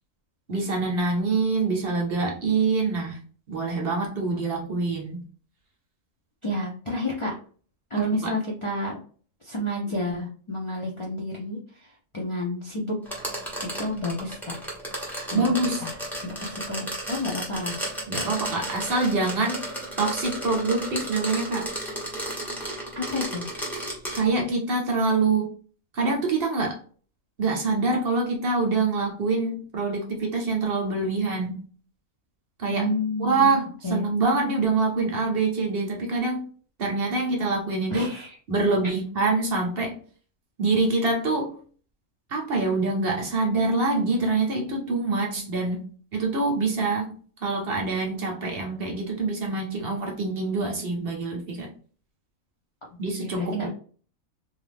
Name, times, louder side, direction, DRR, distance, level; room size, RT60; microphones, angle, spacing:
voice 1, 0.5-3.2 3.5-5.2 8.0-8.3 15.3-15.8 18.1-19.6 20.0-21.7 24.1-25.5 25.9-26.8 27.4-31.6 32.6-32.9 33.2-36.5 36.8-38.1 38.5-40.0 40.6-41.5 42.3-45.9 46.1-47.1 47.4-51.7 53.0-53.7, right 3 dB, 55° right, 1 dB, 0.8 m, -25 dB
voice 2, 6.4-7.3 7.9-9.0 9.4-11.6 12.1-13.0 13.6-14.5 15.3-15.4 15.8-16.0 16.2-17.8 23.0-23.5 32.7-33.6 33.8-34.1 34.5-34.6 37.9-38.3 53.2-53.7, left 1 dB, 45° left, -3 dB, 0.4 m, -30 dB
sound 1, 13.1-24.2, right 1 dB, ahead, 0.7 m, -33 dB
2.5 x 2.4 x 3.3 m, 0.42 s
omnidirectional pair, 1.4 m